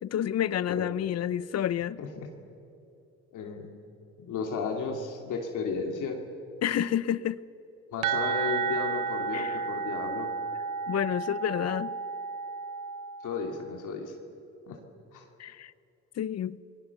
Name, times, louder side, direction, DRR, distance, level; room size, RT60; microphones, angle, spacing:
voice 1, 0.0-2.0 6.6-7.4 9.3-9.6 10.9-11.9 15.4-15.7 16.2-16.6, left 10 dB, 55° left, 0.7 m, -29 dB
voice 2, 2.0-2.3 3.3-3.7 4.2-6.2 7.9-10.3 13.2-14.1 14.7-14.8 15.1-15.2, left 5 dB, 85° left, 2.6 m, -34 dB
sound 1, 8.0-13.6, right 6 dB, 80° right, 1.0 m, -32 dB
28.0 x 20.0 x 7.0 m
cardioid pair, 90°, 30 cm